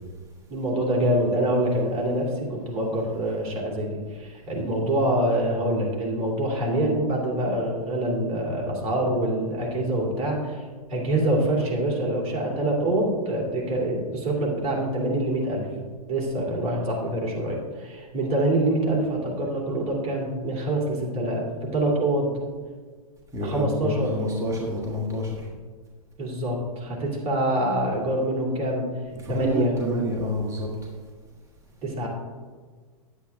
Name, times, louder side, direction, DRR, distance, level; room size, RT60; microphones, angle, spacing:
voice 1, 0.5-10.6 10.9-15.7 16.1-22.3 23.4-24.1 26.2-28.9 29.3-29.7 31.8-32.1, right 1 dB, 30° right, -2 dB, 2.7 m, -25 dB
voice 2, 23.3-25.5 29.1-30.7, left 1 dB, 15° right, -3 dB, 1.4 m, -28 dB
9.5 x 8.4 x 3.5 m, 1.5 s
hypercardioid pair, 125°, 20 cm